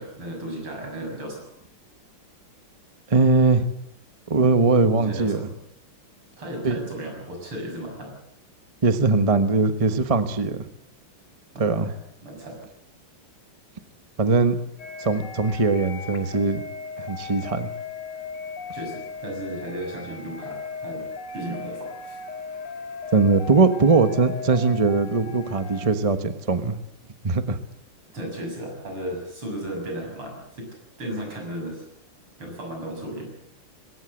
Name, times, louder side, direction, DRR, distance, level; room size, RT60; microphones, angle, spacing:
voice 1, 0.0-1.4 4.8-5.6 6.4-8.2 11.5-11.9 12.2-12.6 18.7-21.1 21.3-22.2 28.1-30.7 31.0-31.8 32.4-33.3, right 1 dB, 80° right, 2 dB, 7.7 m, -35 dB
voice 2, 3.1-3.6 4.3-5.4 6.6-6.8 8.8-10.7 11.6-11.9 14.2-14.6 15.0-16.6 17.0-17.7 23.1-26.8 27.2-27.6, right 3 dB, 25° right, 9 dB, 0.9 m, -20 dB
sound 1, 14.8-26.0, left 4 dB, 75° left, 2.7 m, -37 dB
20.5 x 17.5 x 7.9 m, 0.77 s
omnidirectional pair, 2.4 m